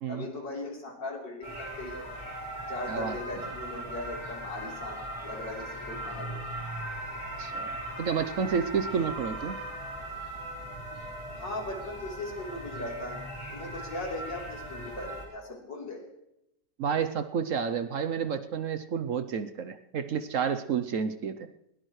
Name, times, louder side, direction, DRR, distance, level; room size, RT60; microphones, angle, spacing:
voice 1, 0.1-2.1 2.7-6.4 11.4-13.3 13.5-16.0, left 2 dB, 90° left, -1 dB, 4.3 m, -38 dB
sound 1, 1.4-15.3, right 1 dB, 15° left, 5.0 m, -39 dB
voice 2, 2.9-3.2 7.4-9.6 16.8-21.5, right 6 dB, 60° right, 11 dB, 0.9 m, -30 dB
21.0 x 18.0 x 3.2 m, 0.81 s
omnidirectional pair, 1.8 m